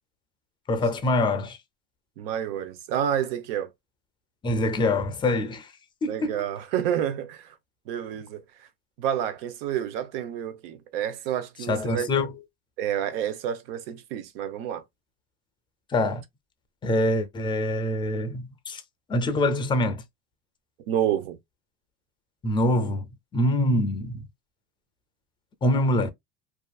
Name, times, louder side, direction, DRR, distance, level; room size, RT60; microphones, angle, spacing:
voice 1, 0.7-1.6 4.4-5.7 6.0-6.4 11.7-12.3 15.9-16.2 16.8-18.8 19.1-20.0 22.4-23.1 23.3-24.3 25.6-26.1, left 1 dB, 15° left, 0.5 m, -24 dB
voice 2, 2.2-3.7 6.1-7.5 7.9-8.4 9.0-12.1 12.8-14.8 20.9-21.4, right 10 dB, 80° right, 0.7 m, -29 dB
2.8 x 2.4 x 2.3 m
supercardioid pair, 130°, 29 cm